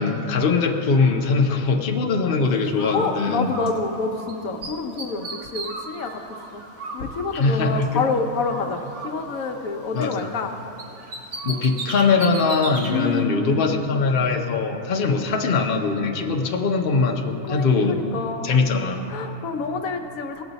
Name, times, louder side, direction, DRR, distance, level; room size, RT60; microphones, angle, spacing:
voice 1, 0.0-3.5 7.3-8.0 9.9-10.3 11.4-18.0 18.4-19.0, left 4 dB, 45° left, 2 dB, 0.8 m, -21 dB
Bird, 2.7-4.3 4.6-8.1 8.4-10.5 10.8-12.9, right 2 dB, 80° right, 1.7 m, -36 dB
voice 2, 2.9-6.2 6.5-6.6 6.9-10.5 12.9-13.8 17.4-18.6 19.1-20.4, left 4 dB, 75° left, 4 dB, 1.2 m, -28 dB
18.0 x 7.1 x 4.0 m, 2.8 s
omnidirectional pair, 1.5 m